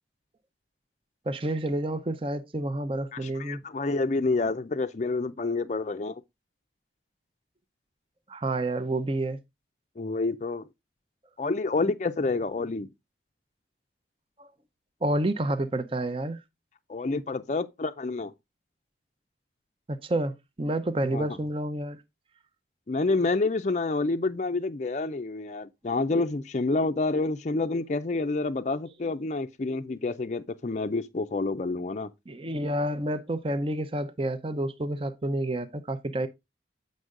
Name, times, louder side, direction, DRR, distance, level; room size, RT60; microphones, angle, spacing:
voice 1, 1.3-3.6 8.3-9.4 14.4-14.5 15.0-16.4 19.9-22.0 32.3-36.3, right 1 dB, 30° right, 0.6 m, -29 dB
voice 2, 3.1-6.2 10.0-10.7 11.4-12.9 16.9-18.3 21.1-21.3 22.9-32.1, left 3 dB, 40° left, 0.4 m, -28 dB
7.9 x 5.3 x 3.7 m
head